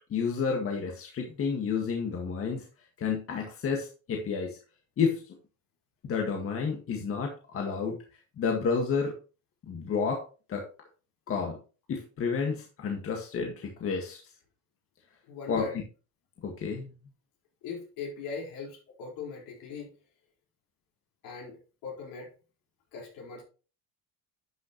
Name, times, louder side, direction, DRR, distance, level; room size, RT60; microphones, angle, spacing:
voice 1, 0.1-2.6 3.0-4.6 5.0-5.3 6.0-8.0 8.4-9.1 9.7-10.2 10.5-10.6 11.3-11.6 11.9-14.2 15.5-15.7 16.4-16.9, left 5 dB, 40° left, 1 dB, 1.8 m, -30 dB
voice 2, 15.3-15.7 17.6-19.9 21.2-22.3 22.9-23.4, left 5 dB, 75° left, -2 dB, 4.7 m, -40 dB
11.0 x 6.6 x 3.1 m, 0.36 s
cardioid pair, 145°, 33 cm